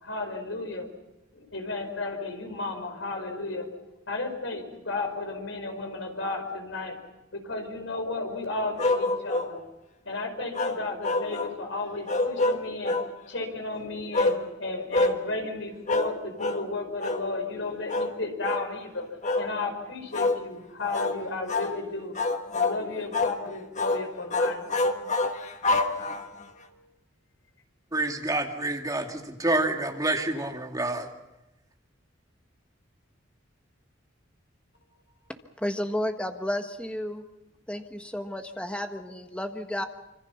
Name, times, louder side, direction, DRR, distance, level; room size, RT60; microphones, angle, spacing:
voice 1, 0.0-0.9 1.3-3.7 4.1-7.0 7.3-9.6 10.0-13.0 13.3-19.0 19.4-22.1 22.5-24.6, left 3 dB, 80° left, 5 dB, 5.1 m, -33 dB
sound 1, 8.8-9.5 10.5-11.6 12.1-13.1 14.1-14.4 14.9-15.2 15.9-16.1 16.4-16.6 17.0-17.2 17.9-18.1 18.4-18.7 19.2-19.5 20.1-20.4 20.9-21.2 21.5-21.7 22.2-22.8 23.1-23.4 23.8-24.0 24.3-26.4, left 2 dB, 40° left, 1.5 m, -26 dB
voice 2, 27.9-31.1, right 2 dB, 20° right, 2 dB, 2.5 m, -28 dB
voice 3, 35.6-37.2 37.7-39.9, left 1 dB, 5° left, 6 dB, 1.5 m, -32 dB
26.0 x 25.5 x 5.9 m, 0.96 s
head